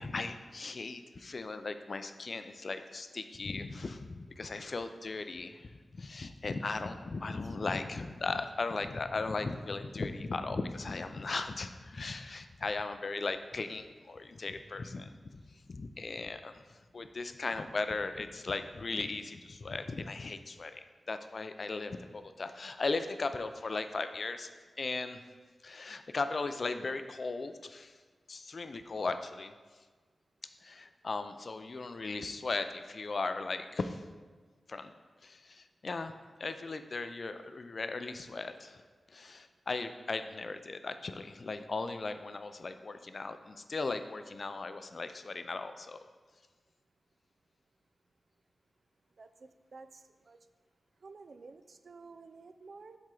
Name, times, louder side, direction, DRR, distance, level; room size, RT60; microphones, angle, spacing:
voice 1, 0.0-15.1 15.7-16.6 16.9-24.5 24.8-25.2 25.6-27.9 28.3-29.5 30.6-34.0 34.7-34.9 35.2-36.1 36.4-38.8 39.1-46.1, left 3 dB, 50° left, 9 dB, 0.4 m, -37 dB
voice 2, 7.1-7.6 49.2-50.4 51.0-53.0, right 4 dB, 60° right, 10 dB, 0.3 m, -52 dB
7.6 x 4.3 x 3.8 m, 1.4 s
wide cardioid pair, 110°, 0 cm